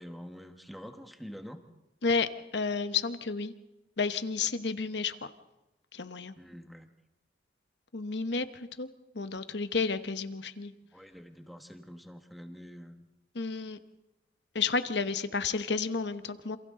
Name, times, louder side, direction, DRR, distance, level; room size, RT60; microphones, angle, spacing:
voice 1, 0.0-1.6 6.4-6.9 10.9-13.0, equal, ahead, 6 dB, 1.3 m, -46 dB
voice 2, 2.0-3.5 4.0-5.3 5.9-6.3 7.9-8.9 9.1-10.7 13.3-13.8 14.5-16.6, left 4 dB, 65° left, 11 dB, 1.0 m, -31 dB
28.0 x 27.5 x 3.8 m, 0.99 s
head